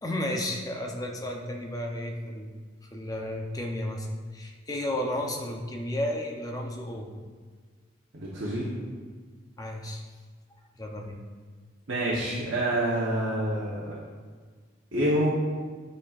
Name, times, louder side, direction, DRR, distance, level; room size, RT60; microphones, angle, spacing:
voice 1, 0.0-2.5 2.9-4.1 4.3-7.1 9.6-10.0 10.8-11.2, left 1 dB, 20° left, 1 dB, 0.6 m, -33 dB
voice 2, 8.1-8.7 11.9-14.0 14.9-15.3, right 1 dB, 65° right, -6 dB, 1.0 m, -27 dB
9.7 x 4.4 x 2.4 m, 1.5 s
head